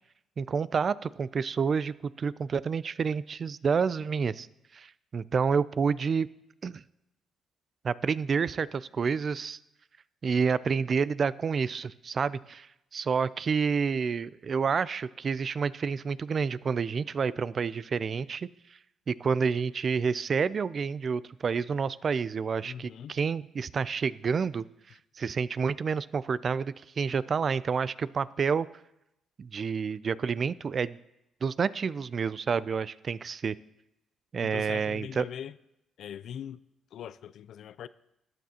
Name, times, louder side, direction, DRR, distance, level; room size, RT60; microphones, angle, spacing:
voice 1, 0.4-4.5 4.7-6.3 6.6-6.8 7.8-9.6 10.2-12.7 12.9-18.5 19.1-24.6 25.2-28.7 29.4-31.0 31.4-33.6 34.3-35.3, right 5 dB, 45° right, 19 dB, 0.3 m, -29 dB
voice 2, 22.6-23.1 34.4-35.6 36.0-36.6 36.9-37.9, left 9 dB, 70° left, 17 dB, 0.3 m, -41 dB
13.5 x 9.3 x 2.9 m, 0.86 s
cardioid pair, 90°, 0 cm